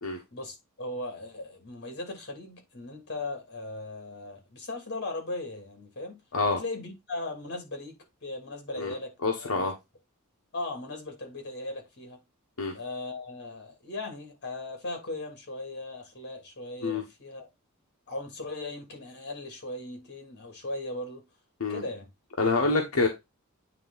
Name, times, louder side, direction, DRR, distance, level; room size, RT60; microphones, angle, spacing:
voice 1, 0.3-6.2 6.5-7.9 8.2-9.7 10.5-12.2 12.7-17.5 18.1-21.2 21.7-22.1 22.6-22.9, left 2 dB, 50° left, 2.7 m, -38 dB
voice 2, 9.2-9.7 12.6-12.7 16.8-17.0 21.6-21.8 22.4-23.1, left 3 dB, 75° left, 1.1 m, -26 dB
8.9 x 3.4 x 4.0 m
head